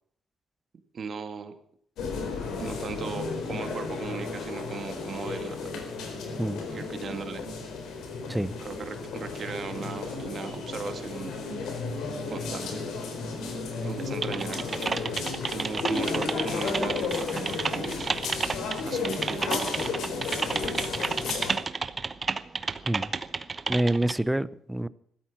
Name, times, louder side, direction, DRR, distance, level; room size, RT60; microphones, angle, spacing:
voice 1, 0.9-1.5 2.6-5.7 6.4-7.5 8.6-11.3 12.3-12.8 13.8-14.6 15.5-18.1 18.8-19.8, right 5 dB, 50° right, 8 dB, 2.3 m, -37 dB
sound 1, 2.0-21.6, left 4 dB, 80° left, 4.2 m, -33 dB
Typing, 14.2-24.1, right 4 dB, 35° right, 1.0 m, -31 dB
voice 2, 23.7-24.9, right 1 dB, 10° right, 18 dB, 0.7 m, -27 dB
15.5 x 13.0 x 6.0 m, 0.65 s
cardioid pair, 90°, 0 cm